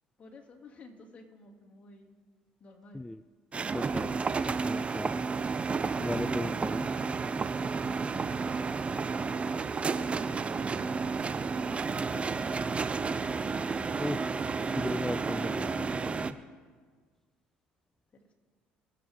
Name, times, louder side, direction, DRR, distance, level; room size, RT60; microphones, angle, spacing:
voice 1, 0.2-2.2 2.6-3.0 7.7-8.7 9.0-11.0 11.3-13.2 18.1-18.3, left 2 dB, 35° left, 0 dB, 2.6 m, -53 dB
sound 1, 3.5-16.3, right 4 dB, 30° right, 0.6 m, -31 dB
voice 2, 3.7-4.2 4.6-5.3 6.0-6.9 14.0-14.2 14.7-16.4, left 1 dB, 10° left, 14 dB, 0.3 m, -36 dB
21.5 x 7.8 x 3.7 m, 1.5 s
hypercardioid pair, 65°, 4 cm